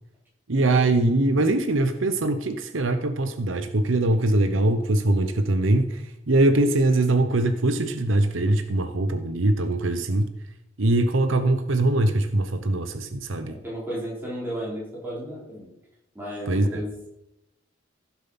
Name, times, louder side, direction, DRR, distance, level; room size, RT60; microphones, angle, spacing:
voice 1, 0.5-10.3 10.8-13.6 16.5-16.8, right 2 dB, 75° right, 10 dB, 0.9 m, -22 dB
voice 2, 13.4-15.7 16.1-16.9, equal, 10° right, -6 dB, 4.7 m, -34 dB
15.5 x 7.2 x 5.9 m, 0.85 s
head